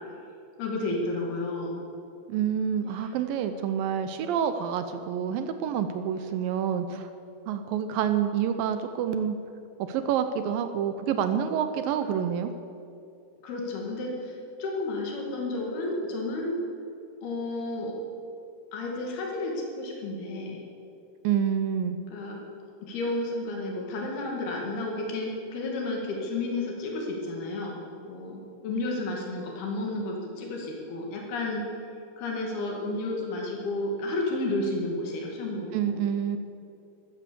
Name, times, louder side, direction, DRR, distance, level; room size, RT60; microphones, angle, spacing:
voice 1, 0.6-1.8 3.0-3.1 12.1-12.2 13.4-16.6 17.2-17.9 18.7-20.6 22.1-22.4 22.8-27.8 28.0-31.7 32.2-36.0, left 2 dB, 85° left, -1 dB, 4.3 m, -32 dB
voice 2, 2.3-7.1 7.5-9.4 9.8-12.5 21.2-22.0 35.7-36.4, right 8 dB, 75° right, 9 dB, 2.3 m, -28 dB
13.5 x 13.5 x 6.9 m, 2.5 s
omnidirectional pair, 4.4 m